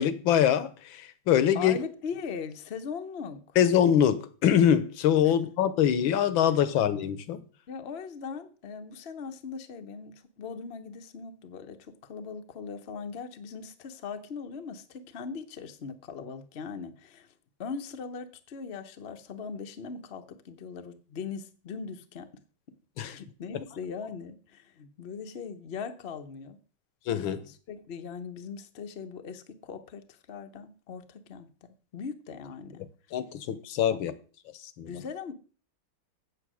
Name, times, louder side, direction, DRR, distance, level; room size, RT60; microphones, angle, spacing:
voice 1, 0.0-1.8 3.6-7.4 23.0-23.2 27.1-27.4 33.1-34.1 34.8-34.9, left 9 dB, 75° left, 1.6 m, -24 dB
voice 2, 1.5-3.6 5.2-5.3 7.7-17.3 17.6-22.3 23.0-26.6 27.4-32.9 33.9-34.0 34.9-35.3, left 5 dB, 45° left, 0.8 m, -40 dB
8.3 x 7.8 x 6.2 m
omnidirectional pair, 2.2 m